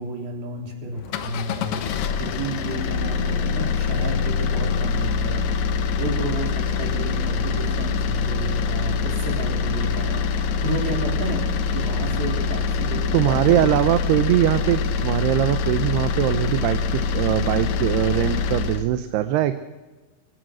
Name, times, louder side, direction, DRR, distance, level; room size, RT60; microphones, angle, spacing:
voice 1, 0.0-1.9 2.2-5.5 6.0-13.6, right 1 dB, 65° right, 3 dB, 5.1 m, -31 dB
sound 1, 1.0-18.9, left 5 dB, 65° left, 2.5 m, -24 dB
voice 2, 13.1-19.5, right 13 dB, 80° right, 11 dB, 2.8 m, -21 dB
24.0 x 18.0 x 6.2 m, 1.2 s
omnidirectional pair, 4.7 m